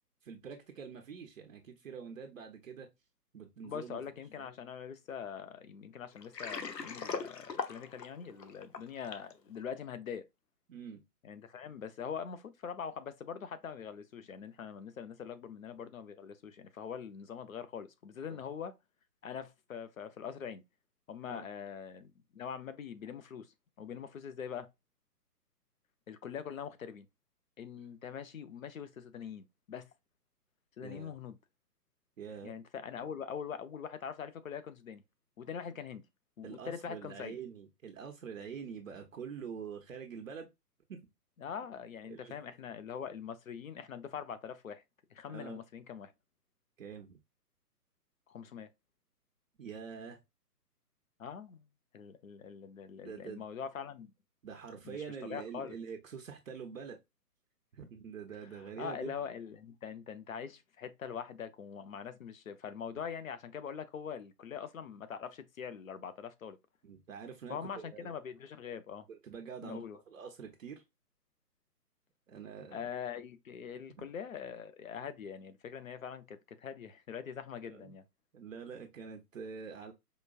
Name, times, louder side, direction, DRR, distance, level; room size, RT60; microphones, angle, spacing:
voice 1, 0.2-2.9 3.3-4.0 10.7-11.0 18.3-18.4 21.3-21.5 30.8-31.1 32.2-32.5 36.4-40.5 40.9-41.0 42.0-42.3 45.3-45.6 46.8-47.2 49.6-50.2 53.0-53.4 54.4-57.0 57.7-59.1 66.8-68.1 69.1-69.8 70.1-70.8 72.3-72.9 74.0-74.1 77.7-77.9 78.3-79.9, right 6 dB, 55° right, 0.8 m, -45 dB
voice 2, 3.6-10.3 11.2-18.8 19.2-20.6 21.1-23.5 23.8-24.7 26.1-27.1 27.6-29.9 30.8-31.4 32.4-35.0 35.4-36.0 36.4-37.4 41.4-44.8 45.1-46.1 48.3-48.7 51.2-51.6 51.9-54.1 54.8-55.0 55.3-55.8 58.4-66.6 67.5-69.1 69.6-70.0 72.7-78.0, left 7 dB, 55° left, 0.7 m, -43 dB
Water, 6.2-9.3, left 5 dB, 85° left, 0.8 m, -40 dB
5.1 x 2.2 x 2.3 m
figure-of-eight pair, 135°, 48 cm